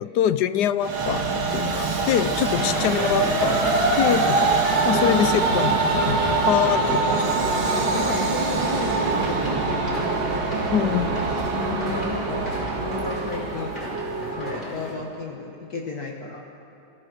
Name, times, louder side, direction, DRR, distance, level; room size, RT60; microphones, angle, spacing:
voice 1, 0.0-4.5 4.8-7.1 10.7-11.2, left 10 dB, 70° left, 13 dB, 1.1 m, -24 dB
Train, 0.8-14.3, right 3 dB, 85° right, 2.7 m, -24 dB
sound 1, 2.3-14.9, equal, 25° left, 5.4 m, -35 dB
sound 2, 4.7-14.6, right 4 dB, 35° right, 1.2 m, -33 dB
voice 2, 5.0-5.3 7.1-10.2 11.5-13.8 14.4-16.4, left 4 dB, 50° left, -1 dB, 2.0 m, -34 dB
28.0 x 16.0 x 6.4 m, 2.8 s
omnidirectional pair, 2.1 m